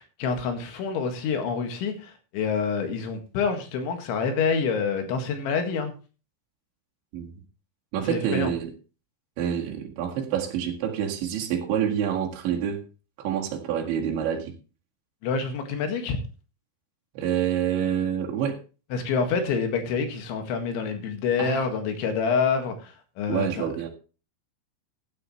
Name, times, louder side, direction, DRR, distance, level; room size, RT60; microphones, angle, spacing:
voice 1, 0.0-5.9 8.1-8.5 15.2-16.2 18.9-23.7, left 5 dB, 80° left, 6 dB, 4.2 m, -27 dB
voice 2, 7.9-8.7 9.4-12.8 13.2-14.6 17.2-18.6 21.4-21.7 23.3-23.9, right 9 dB, 75° right, 1 dB, 4.2 m, -27 dB
16.0 x 9.7 x 3.2 m, 0.34 s
omnidirectional pair, 5.3 m